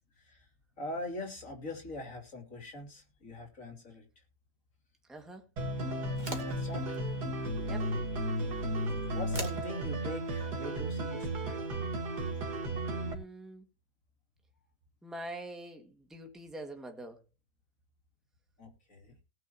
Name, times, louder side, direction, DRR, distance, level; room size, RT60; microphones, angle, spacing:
voice 1, 0.2-0.5 0.8-4.2 6.1-7.1 8.5-8.7 9.1-11.5 18.6-19.1, left 2 dB, 50° left, 3.4 m, -43 dB
voice 2, 5.1-5.4 7.6-7.9 12.7-13.6 15.0-17.2, right 1 dB, ahead, 1.8 m, -45 dB
sound 1, 5.6-13.1, right 1 dB, 70° right, 2.4 m, -34 dB
sound 2, 6.0-12.4, right 2 dB, 25° right, 2.5 m, -49 dB
18.5 x 9.1 x 2.9 m
omnidirectional pair, 1.7 m